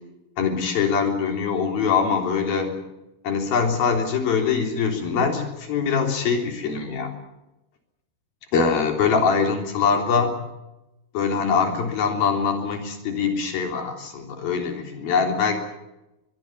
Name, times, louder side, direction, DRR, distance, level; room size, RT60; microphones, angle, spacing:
voice 1, 0.4-2.8 3.2-7.1 8.5-10.4 11.1-15.6, left 5 dB, 70° left, 3 dB, 5.3 m, -23 dB
24.0 x 21.5 x 7.1 m, 0.97 s
omnidirectional pair, 4.5 m